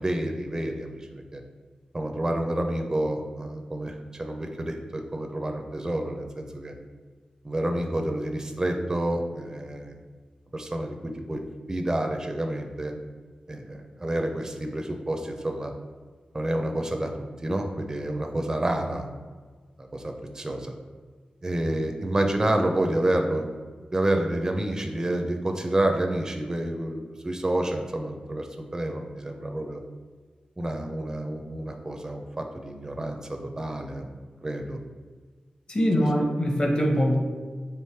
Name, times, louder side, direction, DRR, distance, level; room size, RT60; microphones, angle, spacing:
voice 1, 0.0-1.4 1.9-6.7 7.4-10.0 10.5-11.4 11.7-12.9 13.5-15.7 16.3-19.1 19.8-20.7 21.4-23.5 23.9-29.8 30.6-34.1 34.4-34.8 36.0-36.1, right 1 dB, 25° right, 4 dB, 0.4 m, -29 dB
voice 2, 35.7-37.2, equal, 35° left, 1 dB, 0.8 m, -23 dB
3.3 x 3.0 x 4.4 m, 1.5 s
wide cardioid pair, 85°, 3 cm